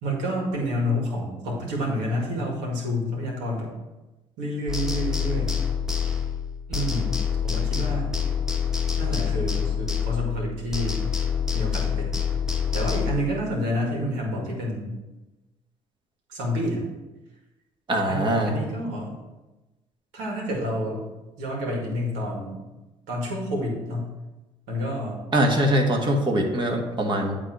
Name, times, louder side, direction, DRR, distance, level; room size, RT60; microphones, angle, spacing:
voice 1, 0.0-3.7 4.4-5.5 6.7-7.2 7.4-8.2 9.0-11.1 11.5-12.1 12.7-15.0 16.3-16.8 18.1-19.1 20.1-21.1 21.4-22.6 23.1-24.1 24.7-25.2, equal, 85° right, -2 dB, 2.1 m, -29 dB
sound 1, 4.7-6.5 6.7-10.5 10.7-13.1, left 7 dB, 5° right, 1.4 m, -26 dB
voice 2, 17.9-18.5 25.3-27.4, right 1 dB, 40° right, 1 dB, 1.7 m, -22 dB
8.9 x 3.5 x 6.3 m, 1.1 s
supercardioid pair, 75°, 13 cm